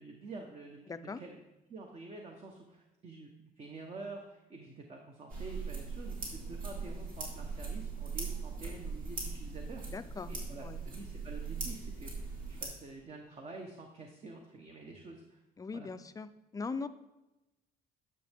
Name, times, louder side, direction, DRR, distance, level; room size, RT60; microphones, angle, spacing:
voice 1, 0.0-1.4 1.7-3.3 3.6-9.8 10.3-12.1 12.5-15.4 15.7-15.9, right 3 dB, 35° right, 2 dB, 1.0 m, -48 dB
voice 2, 0.9-1.2 9.9-10.3 10.6-10.8 15.6-16.9, left 4 dB, 20° left, 11 dB, 0.4 m, -40 dB
sound 1, 5.3-12.6, right 4 dB, 55° right, 2.8 m, -40 dB
10.0 x 6.6 x 3.5 m, 0.98 s
cardioid pair, 110°, 17 cm